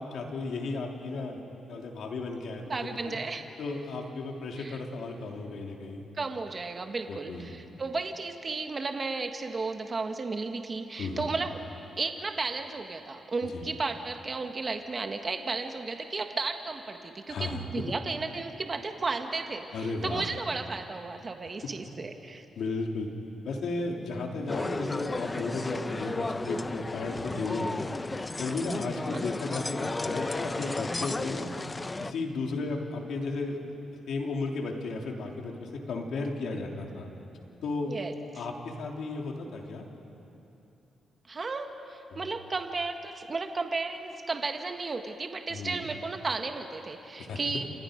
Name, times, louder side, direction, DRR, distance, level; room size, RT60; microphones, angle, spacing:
voice 1, 0.0-1.4 1.7-3.2 3.6-6.0 7.1-7.5 11.0-11.3 13.4-13.7 17.3-17.6 19.7-20.3 22.6-23.1 23.4-27.9 28.4-31.5 32.0-33.6 34.1-37.1 37.6-37.9 38.4-39.9 42.1-42.3 45.5-45.9 47.2-47.4, left 3 dB, 75° left, 1 dB, 3.0 m, -34 dB
voice 2, 2.7-3.4 4.6-4.8 6.2-11.6 12.0-22.4 29.1-29.2 37.9-38.1 41.3-47.6, right 3 dB, 35° right, 5 dB, 1.5 m, -34 dB
sound 1, 24.5-32.1, left 2 dB, 20° left, 0.6 m, -34 dB
29.5 x 27.5 x 5.2 m, 2.9 s
cardioid pair, 105°, 0 cm